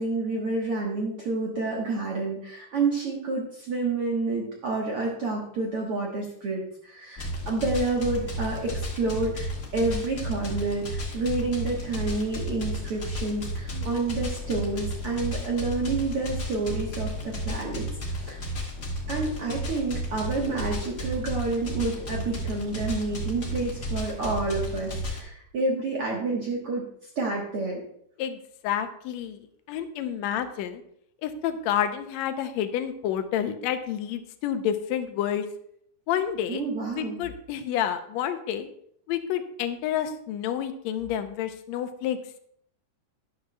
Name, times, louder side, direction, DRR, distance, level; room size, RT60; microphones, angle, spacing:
voice 1, 0.0-17.9 18.3-18.4 19.1-26.8 27.2-27.8 36.5-37.2, right 3 dB, 55° right, -2 dB, 1.9 m, -29 dB
sound 1, 7.2-25.2, equal, 35° left, 1.3 m, -33 dB
voice 2, 28.6-30.8 31.2-35.5 36.1-36.6 36.9-38.7 39.1-42.4, left 10 dB, 80° left, 8 dB, 1.6 m, -29 dB
12.0 x 10.0 x 2.3 m, 0.68 s
omnidirectional pair, 3.8 m